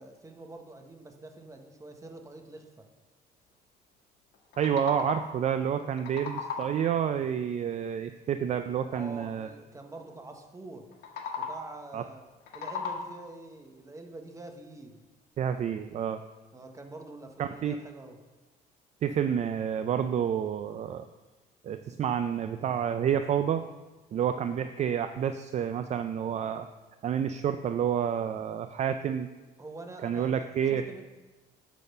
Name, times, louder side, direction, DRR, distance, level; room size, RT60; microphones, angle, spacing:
voice 1, 0.0-2.9 8.9-10.9 11.4-12.2 12.5-15.0 16.5-18.2 29.6-31.0, right 2 dB, 20° right, 4 dB, 1.2 m, -45 dB
sound 1, 4.3-5.5 5.8-6.9 10.9-11.8 12.3-13.4, left 5 dB, 75° left, 1.4 m, -37 dB
voice 2, 4.6-9.5 11.9-12.0 15.4-16.2 17.4-17.7 19.0-21.1 21.6-23.6 24.1-26.7 27.0-29.3 30.0-30.8, right 8 dB, 40° right, 9 dB, 0.4 m, -29 dB
10.5 x 4.2 x 6.7 m, 1.2 s
cardioid pair, 110°, 17 cm